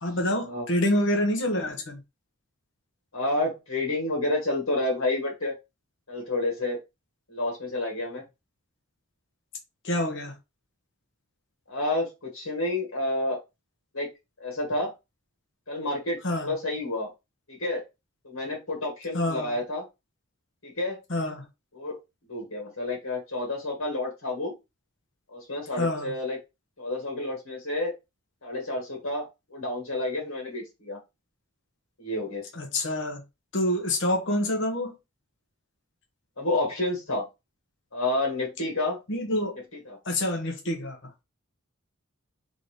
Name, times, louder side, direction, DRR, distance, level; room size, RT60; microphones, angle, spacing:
voice 1, 0.0-2.0 9.8-10.3 16.2-16.5 19.1-19.6 21.1-21.4 25.8-26.1 32.5-33.2 33.5-34.9 39.1-39.6 40.0-41.0, left 1 dB, 60° left, 1.2 m, -27 dB
voice 2, 3.1-5.5 6.1-6.8 7.3-8.2 11.7-13.4 13.9-14.9 15.7-17.1 17.5-17.8 18.2-19.8 20.6-21.0 21.7-22.0 22.3-24.5 25.3-26.4 26.8-27.9 28.4-31.0 32.0-32.5 36.4-37.3 37.9-39.0 39.9-40.0, left 2 dB, 80° left, 2.0 m, -29 dB
4.0 x 3.8 x 3.3 m
head